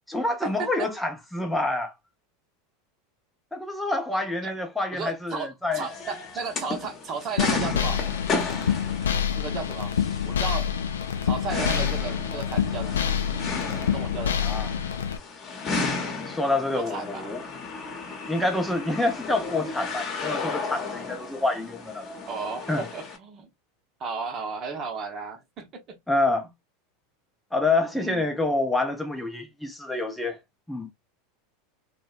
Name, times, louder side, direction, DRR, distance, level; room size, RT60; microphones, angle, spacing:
voice 1, 0.1-1.9 3.5-5.8 14.4-14.7 16.2-17.4 18.3-22.1 22.7-22.9 26.1-26.5 27.5-30.4 30.7-30.9, left 2 dB, 5° left, 0.5 m, -27 dB
voice 2, 4.9-8.0 9.3-10.0 10.2-10.7 11.2-13.1 13.9-14.4 16.7-17.4 22.3-23.5 24.0-26.0 27.9-28.3, right 5 dB, 40° right, 0.8 m, -34 dB
sound 1, 5.7-23.2, left 4 dB, 35° left, 0.9 m, -34 dB
sound 2, 7.4-15.2, left 8 dB, 75° left, 0.3 m, -27 dB
2.6 x 2.2 x 2.3 m
hypercardioid pair, 85°, 0 cm